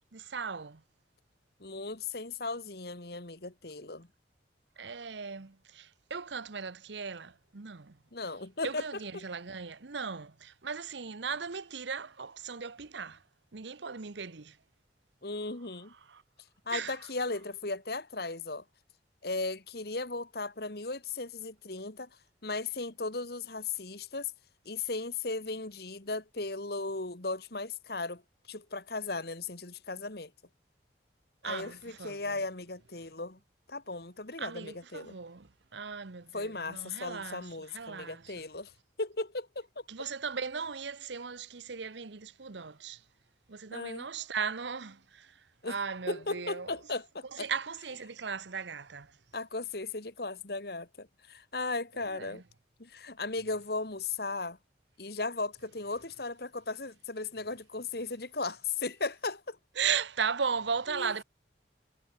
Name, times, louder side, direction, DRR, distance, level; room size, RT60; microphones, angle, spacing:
voice 1, 0.1-0.8 4.8-8.0 8.6-13.2 13.5-14.6 16.1-16.2 16.7-17.0 31.4-32.4 34.4-38.3 39.9-43.0 43.5-45.4 45.6-46.7 47.3-49.2 52.1-52.4 59.8-61.2, right 6 dB, 75° right, 1.0 m, -37 dB
voice 2, 1.6-4.1 8.1-8.8 9.1-9.3 15.2-15.9 16.7-18.6 19.2-22.1 22.4-24.3 24.7-28.2 28.5-30.3 31.4-33.4 33.7-35.2 36.3-38.7 39.0-39.8 43.7-44.1 45.6-45.8 46.1-47.5 49.3-52.4 52.8-54.6 55.0-59.6 60.9-61.1, left 3 dB, 55° left, 2.0 m, -36 dB
head